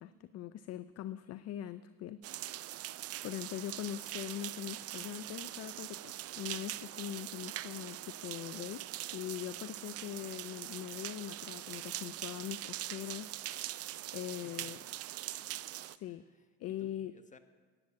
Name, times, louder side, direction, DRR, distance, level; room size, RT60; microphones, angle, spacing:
voice 1, 0.0-2.8 3.2-13.8 14.1-14.8 15.8-16.2 16.6-17.1, left 12 dB, 45° left, 14 dB, 0.5 m, -42 dB
sound 1, 2.2-16.0, right 14 dB, 40° right, 0.5 m, -42 dB
voice 2, 14.4-14.7 16.0-17.4, left 4 dB, 20° left, 8 dB, 1.2 m, -60 dB
11.5 x 8.9 x 7.4 m, 1.4 s
hypercardioid pair, 65°, 37 cm